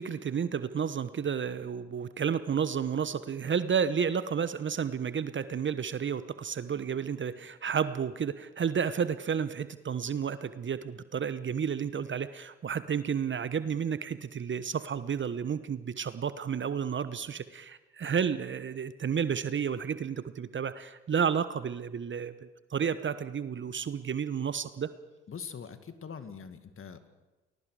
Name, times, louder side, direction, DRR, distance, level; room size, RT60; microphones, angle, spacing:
voice 1, 0.0-24.9, right 7 dB, 35° right, 14 dB, 1.1 m, -31 dB
voice 2, 25.3-27.1, left 6 dB, 40° left, 10 dB, 2.1 m, -43 dB
30.0 x 21.0 x 4.9 m, 1.1 s
hypercardioid pair, 55°, 34 cm